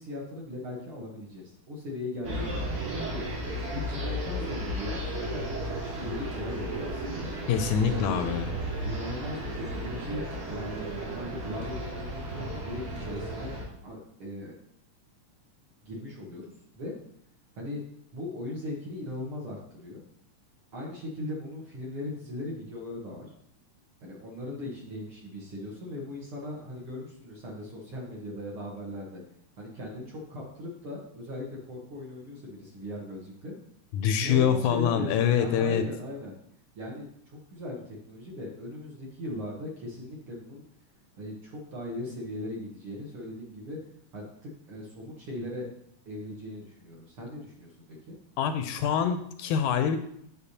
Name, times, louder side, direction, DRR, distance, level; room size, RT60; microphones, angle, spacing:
voice 1, 0.0-3.4 3.7-7.3 7.8-8.2 8.8-13.6 13.8-14.5 15.8-16.9 17.6-17.8 18.1-20.0 20.7-23.3 24.0-29.2 29.6-33.5 34.2-36.4 36.8-40.7 41.2-43.8 44.1-45.7 46.1-47.7 48.0-48.2, left 1 dB, 55° right, -3 dB, 1.8 m, -39 dB
sound 1, 2.2-13.6, right 1 dB, 85° right, 3.8 m, -34 dB
voice 2, 7.5-8.5 33.9-35.9 48.4-50.0, left 8 dB, 80° left, 8 dB, 1.9 m, -25 dB
8.3 x 7.3 x 2.8 m, 0.70 s
omnidirectional pair, 3.6 m